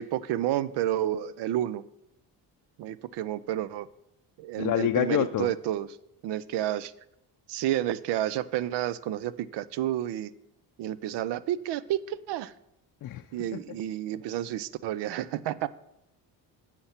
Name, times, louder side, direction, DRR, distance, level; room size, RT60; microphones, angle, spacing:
voice 1, 0.0-1.8 2.8-3.9 4.4-5.9 6.2-6.9 7.5-10.3 10.8-12.5 13.3-15.7, right 12 dB, 80° right, 18 dB, 0.5 m, -30 dB
voice 2, 4.6-5.5 13.0-13.8, left 12 dB, 50° left, 7 dB, 0.5 m, -28 dB
7.9 x 5.8 x 5.7 m, 0.83 s
cardioid pair, 100°, 41 cm